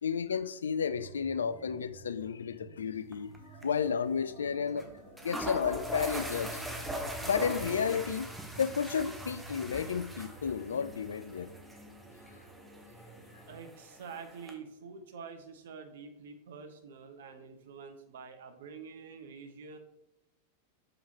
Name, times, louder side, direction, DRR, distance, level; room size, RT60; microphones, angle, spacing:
voice 1, 0.0-3.3 3.6-4.9 5.2-6.6 7.2-8.3 8.6-11.5, left 7 dB, 70° left, 0.3 m, -32 dB
sound 1, 0.9-13.6, right 3 dB, 20° right, 2.3 m, -50 dB
sound 2, 3.1-3.4 3.6-3.7 4.8-4.9 5.2-14.5, equal, 5° right, 1.0 m, -41 dB
voice 2, 13.5-19.8, right 5 dB, 60° right, 0.9 m, -47 dB
7.0 x 5.0 x 2.9 m
figure-of-eight pair, 90°, 0 cm